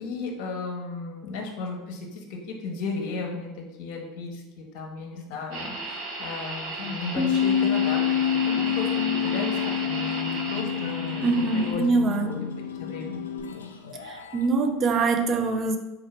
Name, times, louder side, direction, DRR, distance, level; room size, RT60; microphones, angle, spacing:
voice 1, 0.0-3.5 3.8-12.4 12.8-13.2, left 3 dB, 60° left, 1 dB, 0.9 m, -35 dB
sound 1, 5.5-11.7, right 2 dB, 60° right, 1.2 m, -35 dB
Bass guitar, 7.2-13.4, left 9 dB, 5° right, 1.1 m, -27 dB
sound 2, 8.2-14.5, left 5 dB, 85° left, 0.4 m, -37 dB
voice 2, 11.2-12.3 14.0-15.8, right 3 dB, 40° right, 6 dB, 0.5 m, -24 dB
4.0 x 2.8 x 4.3 m, 1.1 s
hypercardioid pair, 80°, 0 cm